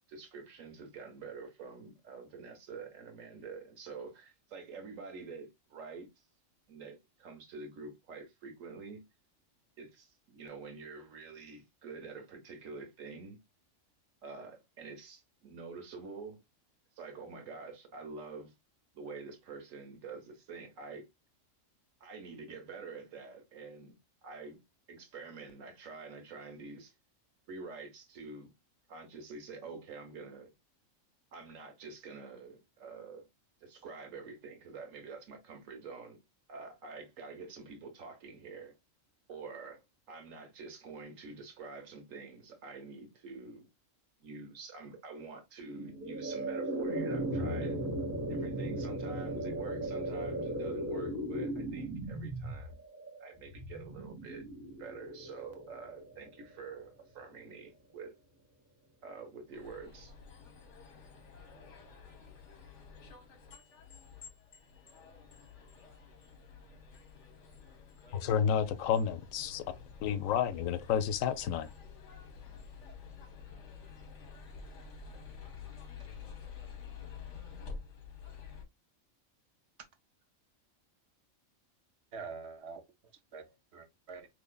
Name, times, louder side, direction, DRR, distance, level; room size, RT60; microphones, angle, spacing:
voice 1, 0.1-6.1 6.7-9.0 9.8-13.4 14.2-16.4 17.0-18.5 18.9-21.1 22.0-24.0 24.2-24.6 24.9-26.9 27.5-28.5 28.9-30.5 31.3-33.3 33.6-36.2 36.5-38.8 39.3-43.7 44.2-47.8 48.3-52.8 53.2-54.4 54.8-58.1 59.0-60.1, right 4 dB, 80° right, 1.3 m, -47 dB
sound 1, 45.6-56.8, right 1 dB, 15° right, 0.9 m, -37 dB
sound 2, 59.5-78.6, left 5 dB, 65° left, 1.2 m, -50 dB
voice 2, 68.1-69.6 70.0-71.7, left 8 dB, 85° left, 1.0 m, -30 dB
voice 3, 82.1-84.3, right 5 dB, 60° right, 1.0 m, -46 dB
4.2 x 3.0 x 2.2 m
omnidirectional pair, 1.3 m